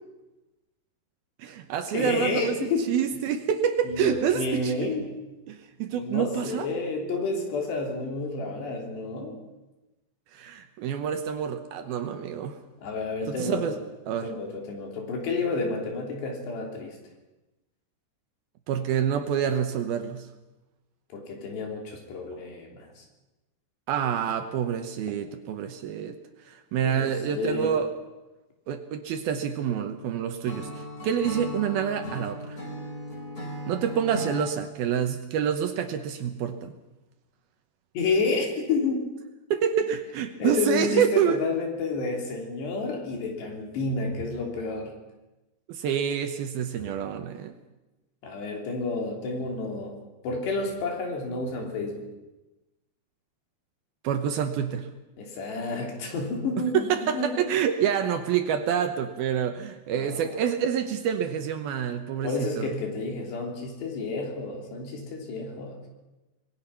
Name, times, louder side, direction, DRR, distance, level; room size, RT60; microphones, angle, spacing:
voice 1, 1.4-4.7 5.5-6.7 10.3-12.6 13.3-13.8 14.1-14.3 18.7-20.3 23.9-26.2 26.5-27.9 28.7-32.6 33.7-36.7 39.5-41.4 45.7-47.6 54.0-54.9 56.7-62.7, right 8 dB, 70° right, 7 dB, 2.6 m, -27 dB
voice 2, 1.9-3.0 3.8-5.1 6.0-9.4 12.8-13.8 14.2-17.0 21.1-23.0 26.9-27.7 38.0-39.1 40.4-44.9 48.2-50.0 50.2-52.0 55.2-56.8 57.0-57.4 59.9-60.4 62.2-65.8, left 3 dB, 70° left, 1 dB, 5.4 m, -30 dB
Acoustic guitar / Strum, 30.4-34.5, equal, 20° left, 4.7 m, -37 dB
25.0 x 20.5 x 5.9 m, 1.0 s
omnidirectional pair, 5.1 m